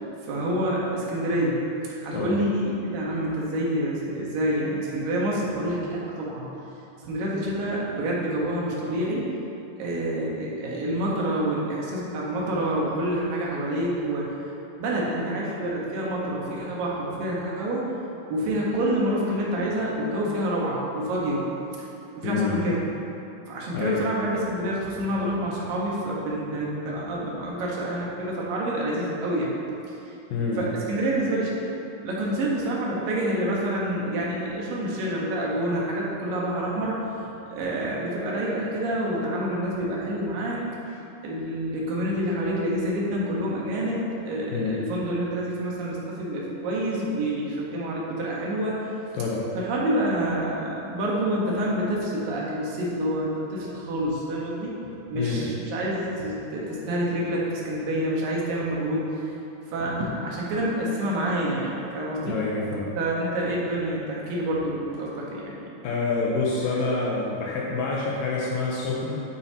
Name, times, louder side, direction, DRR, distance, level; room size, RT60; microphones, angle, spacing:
voice 1, 0.2-1.6 2.0-6.5 7.0-9.2 9.8-14.3 14.8-17.8 18.3-21.4 22.2-22.8 23.5-29.5 30.6-31.6 32.0-37.0 37.5-40.6 41.2-48.9 49.5-54.8 55.1-59.3 59.7-62.4 63.0-65.7, right 1 dB, 65° right, -4 dB, 2.6 m, -27 dB
voice 2, 22.2-22.6 23.7-24.0 30.3-30.6 44.5-44.8 49.1-49.4 55.1-55.5 62.2-62.8 65.8-69.2, left 4 dB, 90° left, -4 dB, 1.9 m, -27 dB
12.0 x 8.0 x 2.9 m, 2.8 s
omnidirectional pair, 5.2 m